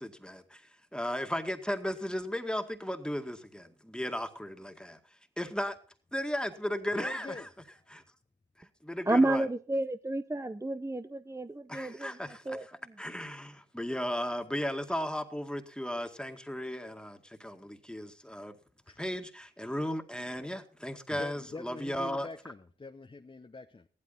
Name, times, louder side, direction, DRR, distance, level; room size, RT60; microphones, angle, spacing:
voice 1, 0.0-5.0 5.4-5.8 6.1-7.3 7.9-8.0 8.6-9.5 11.7-12.7 13.0-18.6 19.0-22.3, equal, 5° left, 2.0 m, -35 dB
voice 2, 6.9-7.5 18.8-19.0 21.1-23.9, left 3 dB, 25° left, 0.9 m, -44 dB
voice 3, 9.1-12.7, right 2 dB, 15° right, 0.7 m, -30 dB
15.0 x 12.0 x 4.2 m
cardioid pair, 50°, 20 cm